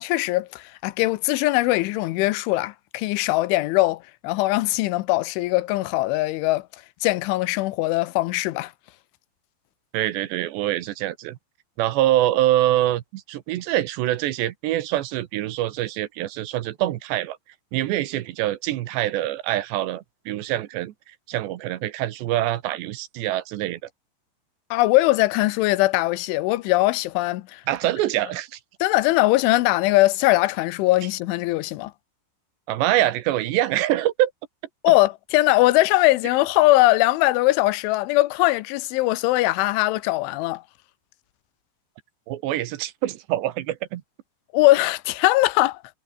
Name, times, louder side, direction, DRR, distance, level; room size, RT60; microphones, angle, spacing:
voice 1, 0.0-6.7 7.0-8.7 24.7-27.6 28.8-31.9 34.8-40.6 44.5-45.8, left 19 dB, 85° left, 3.3 m, -21 dB
voice 2, 9.9-11.4 11.8-17.4 17.7-20.9 21.3-23.8 27.7-28.6 32.7-34.3 42.3-44.0, right 14 dB, 75° right, 3.2 m, -24 dB
omnidirectional pair, 5.4 m